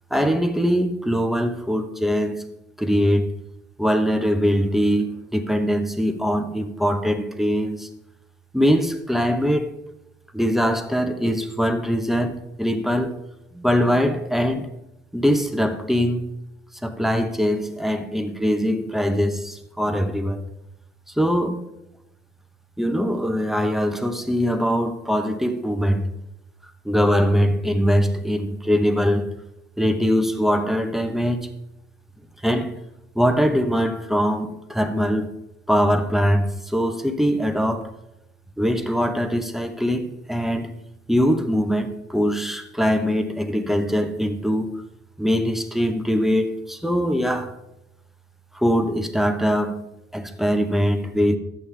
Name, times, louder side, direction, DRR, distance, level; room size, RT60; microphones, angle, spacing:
voice 1, 0.1-2.5 2.8-3.3 3.8-7.9 8.5-9.7 10.3-13.2 13.5-14.7 15.1-16.3 16.8-20.5 21.2-21.6 22.8-26.1 26.8-29.3 29.8-31.5 32.4-32.7 33.1-35.3 35.7-37.9 38.6-40.7 41.1-44.7 45.2-47.6 48.5-51.4, equal, ahead, 6 dB, 1.0 m, -22 dB
11.0 x 8.4 x 3.5 m, 0.85 s
cardioid pair, 90°, 20 cm